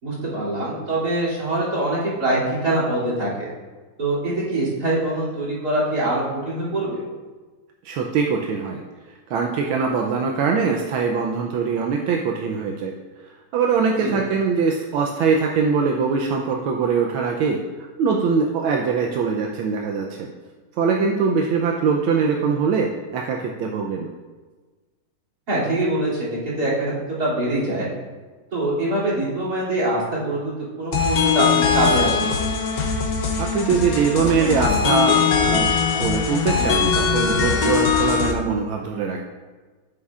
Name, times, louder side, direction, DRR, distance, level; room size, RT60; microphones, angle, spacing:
voice 1, 0.0-3.5 4.0-7.0 14.0-14.2 25.5-26.9 27.2-27.9 28.5-32.3, right 1 dB, 50° right, -6 dB, 3.3 m, -24 dB
voice 2, 7.8-8.8 9.3-12.9 13.5-17.6 18.0-20.3 20.8-24.1 33.4-35.7 36.0-39.2, right 5 dB, 85° right, 1 dB, 1.5 m, -22 dB
sound 1, 30.9-38.3, left 6 dB, 60° left, 1.1 m, -21 dB
9.6 x 8.3 x 2.4 m, 1.3 s
omnidirectional pair, 2.2 m